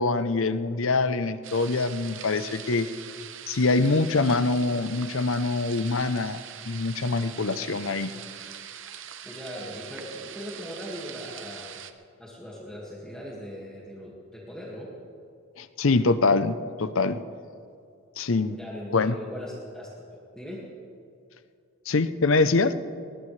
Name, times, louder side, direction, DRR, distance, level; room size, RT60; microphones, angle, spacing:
voice 1, 0.0-2.9 3.5-8.1 15.6-17.2 18.2-18.6 18.9-19.1 21.9-22.7, left 3 dB, 65° left, 12 dB, 0.6 m, -24 dB
sound 1, 1.4-11.9, right 9 dB, 55° right, 0.8 m, -42 dB
voice 2, 9.2-11.8 12.2-14.9 18.5-20.1 20.3-20.6, equal, 5° left, -5 dB, 1.9 m, -39 dB
20.5 x 19.5 x 3.3 m, 2.4 s
head